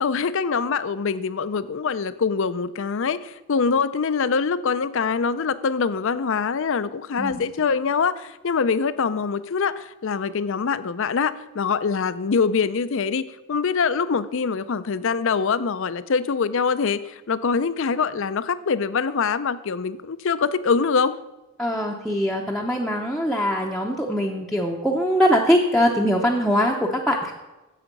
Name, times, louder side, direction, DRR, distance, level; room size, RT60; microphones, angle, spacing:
voice 1, 0.0-21.2, left 5 dB, 60° left, 15 dB, 0.5 m, -24 dB
voice 2, 21.6-27.3, equal, ahead, -3 dB, 0.7 m, -22 dB
10.5 x 7.8 x 5.2 m, 1.1 s
head